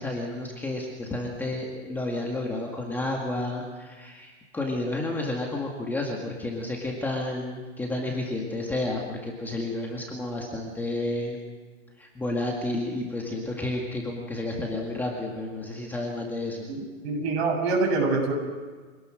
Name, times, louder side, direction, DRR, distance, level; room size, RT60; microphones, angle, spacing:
voice 1, 0.0-11.4 12.0-16.7, left 2 dB, 5° left, -1 dB, 1.9 m, -31 dB
voice 2, 16.7-18.3, right 3 dB, 55° right, 2 dB, 7.9 m, -25 dB
26.0 x 18.5 x 6.3 m, 1.4 s
hypercardioid pair, 165°, 38 cm